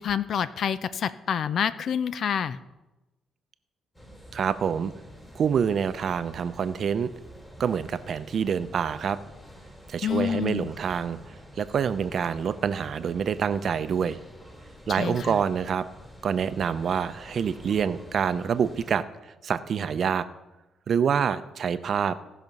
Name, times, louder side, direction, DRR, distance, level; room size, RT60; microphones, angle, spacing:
voice 1, 0.0-2.6 10.0-10.7 14.9-15.4, left 8 dB, 60° left, 14 dB, 0.6 m, -28 dB
sound 1, 3.9-18.9, equal, 15° left, 2.9 m, -48 dB
voice 2, 4.3-4.9 5.3-7.1 7.6-9.2 9.9-14.2 14.9-15.8 16.2-19.0 19.4-20.3 20.9-22.2, right 7 dB, 55° right, 12 dB, 0.6 m, -26 dB
17.5 x 6.0 x 5.4 m, 1.0 s
cardioid pair, 90°, 0 cm